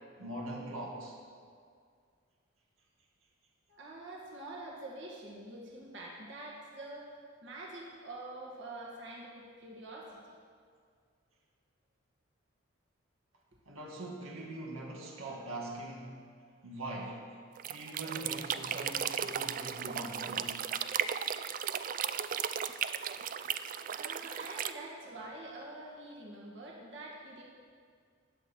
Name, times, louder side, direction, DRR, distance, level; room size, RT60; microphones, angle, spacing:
voice 1, 0.2-1.2 13.7-16.2 16.6-17.2 17.7-20.6, right 1 dB, 85° right, -2 dB, 2.0 m, -42 dB
voice 2, 3.7-7.1 7.4-10.3 23.9-27.4, right 2 dB, 60° right, -3 dB, 1.9 m, -46 dB
sound 1, 17.6-24.7, right 8 dB, 40° right, 0.3 m, -35 dB
19.5 x 7.5 x 4.6 m, 2.1 s
head